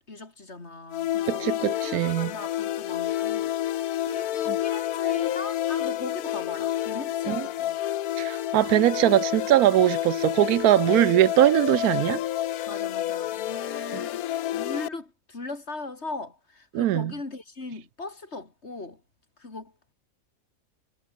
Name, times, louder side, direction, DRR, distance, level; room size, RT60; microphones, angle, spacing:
voice 1, 0.1-7.8 12.7-14.2 14.5-19.0 19.4-19.7, left 3 dB, 45° left, 3.5 m, -39 dB
sound 1, 0.9-14.9, left 13 dB, 90° left, 1.2 m, -29 dB
voice 2, 1.3-2.3 4.5-4.6 7.3-7.5 8.2-12.2 13.9-14.0 16.7-17.1, right 14 dB, 85° right, 1.1 m, -21 dB
omnidirectional pair, 1.5 m